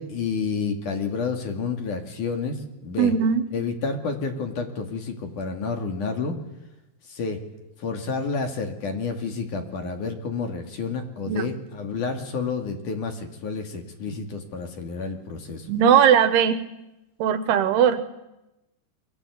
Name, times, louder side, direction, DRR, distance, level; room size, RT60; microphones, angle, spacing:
voice 1, 0.0-3.1 3.5-6.4 7.1-7.4 7.8-15.7, left 4 dB, 50° left, 5 dB, 3.7 m, -30 dB
voice 2, 3.0-3.4 11.3-11.5 15.7-16.6 17.2-18.0, right 8 dB, 70° right, 12 dB, 3.1 m, -19 dB
28.0 x 24.0 x 8.4 m, 0.94 s
omnidirectional pair, 5.0 m